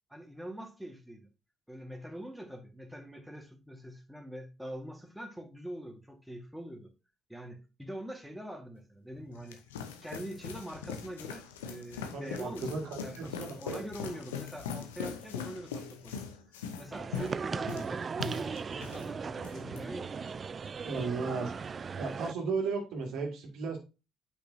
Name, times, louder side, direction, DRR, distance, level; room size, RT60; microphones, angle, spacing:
voice 1, 0.1-1.3 1.7-6.9 7.3-9.6 10.0-16.3 16.8-20.4, equal, 5° right, 1.7 m, -44 dB
sound 1, 9.1-19.1 19.4-19.8, left 7 dB, 80° left, 0.8 m, -41 dB
voice 2, 12.1-13.8 20.8-21.5 22.0-23.8, right 4 dB, 65° right, 2.1 m, -35 dB
sound 2, 16.9-22.3, right 5 dB, 40° right, 0.3 m, -37 dB
8.6 x 5.3 x 2.7 m
hypercardioid pair, 50°, 0 cm